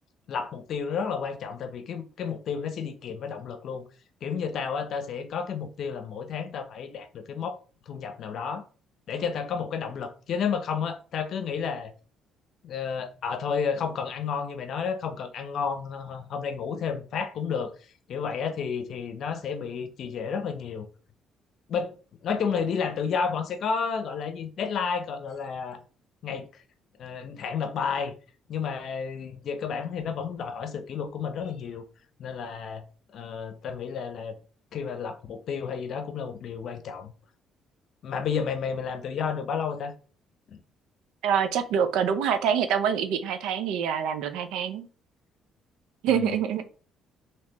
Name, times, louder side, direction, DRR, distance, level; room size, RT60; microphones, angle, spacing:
voice 1, 0.3-3.8 4.2-7.6 7.9-8.6 9.1-11.9 12.6-17.7 18.1-20.9 21.7-21.9 22.2-25.8 26.2-26.6 27.0-28.1 28.5-31.8 32.2-32.8 33.1-34.3 34.7-37.1 38.0-39.9 40.5-40.6 46.1-46.3, left 6 dB, 65° left, 0.6 m, -31 dB
voice 2, 41.2-44.9 46.0-46.8, right 8 dB, 80° right, 0.5 m, -26 dB
3.3 x 3.0 x 3.0 m
supercardioid pair, 80°, 0 cm